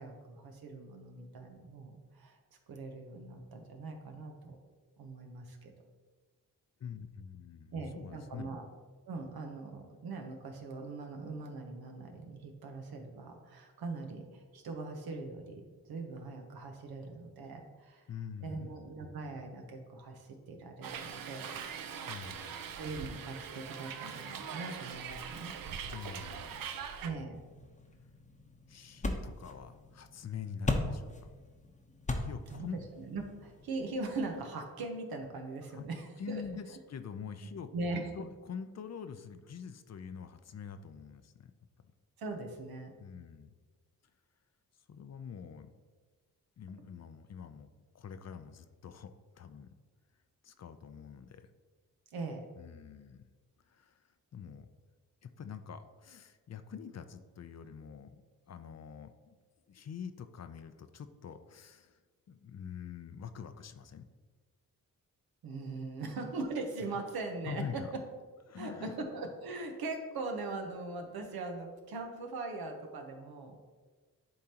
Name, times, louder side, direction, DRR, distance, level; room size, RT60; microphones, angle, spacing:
voice 1, 0.0-2.4 2.7-4.6 5.0-5.7 7.7-8.6 9.1-18.0 18.4-21.6 22.8-25.5 26.2-26.4 27.0-27.4 32.5-36.4 37.7-38.1 42.2-43.0 52.1-52.4 65.4-68.0 68.6-73.6, right 3 dB, 85° right, 3 dB, 1.0 m, -41 dB
voice 2, 6.8-8.6 18.1-19.0 22.1-22.7 25.9-26.8 28.7-31.3 32.2-32.8 35.7-35.9 36.2-41.5 43.0-43.5 44.9-45.7 46.6-47.7 47.9-49.7 50.4-51.5 52.6-53.2 53.7-54.7 55.2-58.2 58.5-59.3 59.7-62.0 62.3-64.1 67.5-67.9 68.4-68.9, left 7 dB, 45° left, 10 dB, 0.5 m, -45 dB
Hiss, 20.8-27.1, right 7 dB, 70° right, 0.6 m, -42 dB
sound 1, 27.3-34.4, left 2 dB, 20° left, 0.8 m, -39 dB
10.5 x 3.7 x 2.9 m, 1.4 s
cardioid pair, 65°, 36 cm